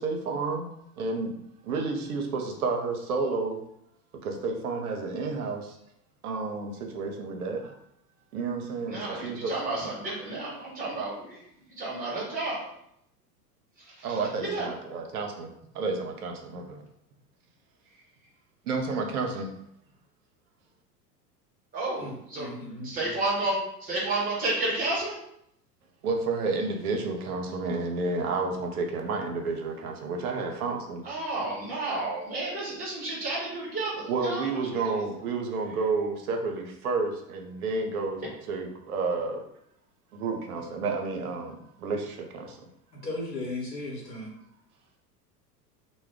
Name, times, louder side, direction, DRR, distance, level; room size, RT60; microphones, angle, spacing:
voice 1, 0.0-1.4 1.6-3.6 4.2-5.8 6.2-7.7 8.3-9.5 14.0-16.8 18.6-19.5 26.0-31.0 34.1-39.4 40.1-42.6, right 4 dB, 60° right, 2 dB, 0.6 m, -31 dB
voice 2, 8.9-11.4 11.8-12.6 13.8-14.7 21.7-22.5 22.8-25.2 31.0-35.0, right 2 dB, 15° right, -5 dB, 1.0 m, -31 dB
voice 3, 22.0-22.9 40.6-40.7 42.9-44.3, left 2 dB, 80° left, -3 dB, 1.0 m, -36 dB
2.2 x 2.1 x 3.5 m, 0.74 s
figure-of-eight pair, 85°, 50 cm